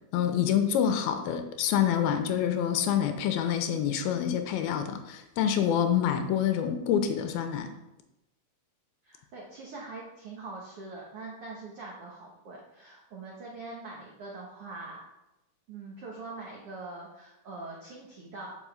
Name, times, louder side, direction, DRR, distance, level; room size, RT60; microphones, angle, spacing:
voice 1, 0.1-7.7, left 9 dB, 85° left, 7 dB, 2.5 m, -27 dB
voice 2, 9.0-15.0 15.7-18.5, right 3 dB, 80° right, -3 dB, 1.2 m, -43 dB
6.1 x 5.5 x 6.9 m, 0.93 s
omnidirectional pair, 4.4 m